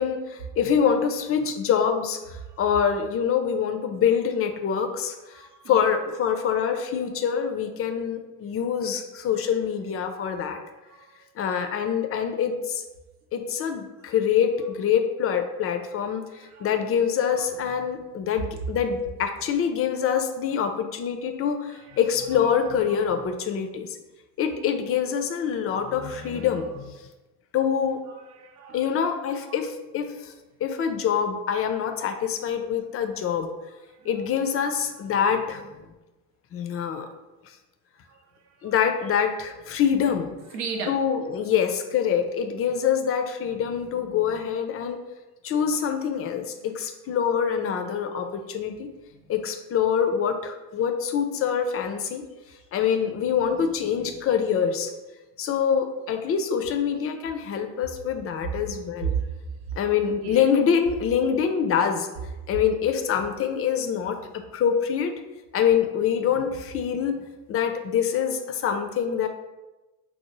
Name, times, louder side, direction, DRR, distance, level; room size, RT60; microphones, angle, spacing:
voice 1, 0.0-10.6 11.4-12.8 13.3-24.0 24.4-26.9 27.5-28.0 28.7-30.3 30.6-33.5 34.0-35.7 36.5-37.1 38.6-40.4 40.9-45.0 45.4-48.9 49.3-52.2 52.7-54.9 55.4-59.1 59.8-62.1 62.5-65.1 65.5-67.2 67.5-69.3, left 7 dB, 35° left, 6 dB, 0.4 m, -25 dB
voice 2, 5.3-5.8 10.9-11.2 16.3-16.7 17.4-17.5 21.7-22.0 22.9-23.0 26.0-26.6 28.1-28.9 29.3-29.7 34.0-34.3 34.9-35.0 38.1-38.2 38.6-38.7 40.5-41.0 59.1-59.2 60.2-60.4, right 6 dB, 75° right, 2 dB, 0.7 m, -37 dB
4.6 x 2.0 x 3.0 m, 1.1 s
hypercardioid pair, 55°, 45 cm